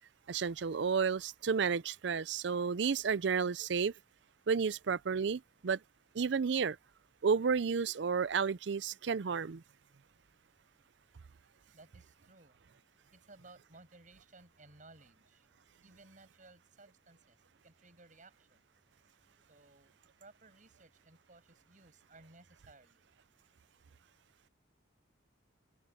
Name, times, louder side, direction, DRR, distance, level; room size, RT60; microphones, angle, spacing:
voice 1, 0.3-3.9 4.5-5.8 6.1-6.8 7.2-9.6, right 6 dB, 65° right, 0.5 m, -31 dB
voice 2, 11.7-12.6 13.1-15.5 15.8-18.7 19.5-19.9 20.2-23.0, right 2 dB, 40° right, 6.7 m, -59 dB
open air
head